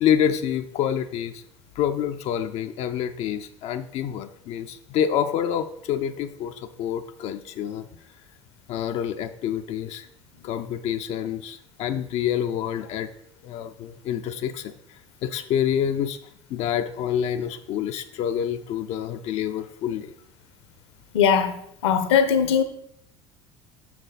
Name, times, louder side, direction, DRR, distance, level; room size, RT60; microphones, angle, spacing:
voice 1, 0.0-1.4 1.8-7.9 8.7-10.1 10.4-13.1 13.4-14.7 15.2-16.2 16.5-20.1, left 9 dB, 45° left, 0.4 m, -27 dB
voice 2, 21.1-21.5 21.8-22.6, left 7 dB, 70° left, 0.8 m, -19 dB
6.3 x 5.9 x 4.1 m
figure-of-eight pair, 65°, 15 cm